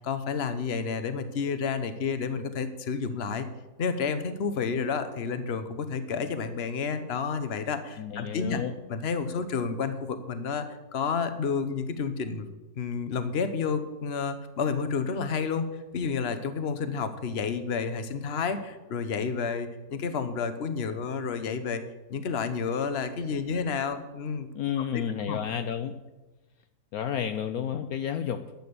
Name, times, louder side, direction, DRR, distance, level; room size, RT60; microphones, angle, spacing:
voice 1, 0.0-3.5 3.8-8.6 8.9-12.5 12.8-21.8 22.1-24.5 24.9-25.0 25.3-25.4, left 5 dB, 45° left, 10 dB, 1.1 m, -30 dB
voice 2, 8.0-8.7 24.5-26.0 26.9-28.5, left 8 dB, 70° left, 8 dB, 1.1 m, -31 dB
12.0 x 8.9 x 6.9 m, 1.1 s
omnidirectional pair, 1.7 m